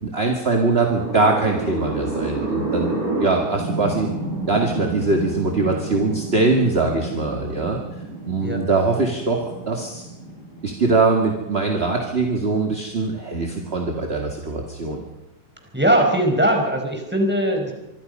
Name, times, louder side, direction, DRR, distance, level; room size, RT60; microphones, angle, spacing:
voice 1, 0.0-4.1 4.5-7.8 8.3-10.0 10.6-15.0, right 3 dB, 25° right, 2 dB, 1.7 m, -22 dB
sound 1, 0.9-11.3, right 2 dB, 85° right, 7.0 m, -30 dB
voice 2, 15.7-17.7, right 1 dB, 5° right, 3 dB, 4.6 m, -20 dB
25.5 x 24.0 x 5.5 m, 0.96 s
omnidirectional pair, 3.5 m